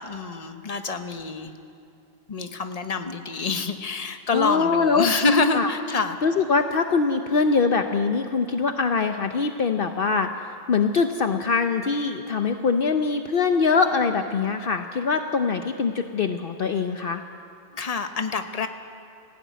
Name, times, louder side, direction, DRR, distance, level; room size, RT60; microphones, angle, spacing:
voice 1, 0.0-1.5 2.3-6.2 17.7-18.7, left 4 dB, 40° left, 7 dB, 1.1 m, -26 dB
voice 2, 4.3-5.1 5.5-5.7 6.2-10.3 10.7-17.2, left 4 dB, 60° left, 6 dB, 0.9 m, -23 dB
19.5 x 16.0 x 9.4 m, 2.7 s
omnidirectional pair, 1.1 m